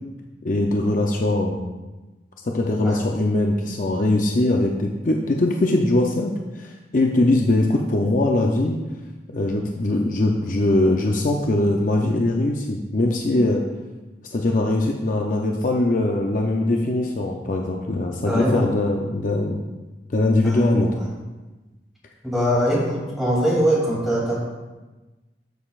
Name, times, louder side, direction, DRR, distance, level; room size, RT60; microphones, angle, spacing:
voice 1, 0.4-1.6 2.4-8.8 9.3-13.6 14.2-19.6 20.1-20.9, left 2 dB, 45° left, 1 dB, 0.6 m, -21 dB
voice 2, 18.3-18.7 20.4-21.0 22.2-24.4, equal, ahead, -7 dB, 2.7 m, -22 dB
13.0 x 6.6 x 2.4 m, 1.2 s
head